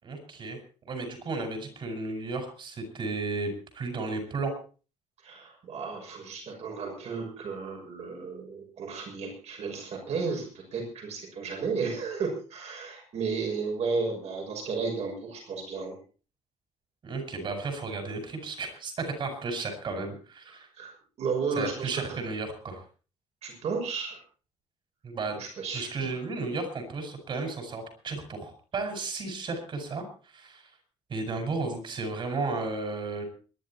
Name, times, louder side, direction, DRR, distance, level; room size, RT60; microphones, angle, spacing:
voice 1, 0.0-0.6 0.8-4.5 17.0-20.7 21.6-22.8 25.0-25.4 25.7-30.7 31.1-33.2, right 3 dB, 45° right, 6 dB, 5.5 m, -34 dB
voice 2, 5.2-16.0 20.8-20.9 21.2-22.2 23.4-24.2 25.3-26.1, right 4 dB, 60° right, 2 dB, 6.2 m, -33 dB
22.5 x 11.5 x 4.3 m, 0.37 s
cardioid pair, 175°, 12 cm